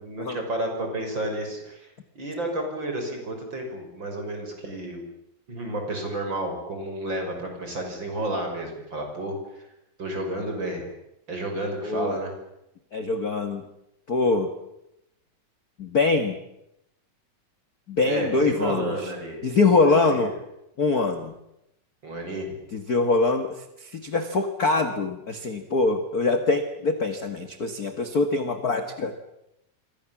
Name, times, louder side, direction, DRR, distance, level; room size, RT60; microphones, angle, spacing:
voice 1, 0.0-5.1 5.5-9.7 10.0-10.8 11.3-12.3 18.0-19.4 19.8-20.3 22.0-22.6, right 1 dB, 30° right, 3 dB, 6.6 m, -31 dB
voice 2, 11.8-12.2 12.9-13.6 14.1-14.5 15.8-16.4 17.9-18.9 19.4-20.3 20.8-21.3 22.7-29.2, left 3 dB, 40° left, 8 dB, 1.4 m, -23 dB
28.0 x 24.5 x 7.4 m, 0.84 s
omnidirectional pair, 4.0 m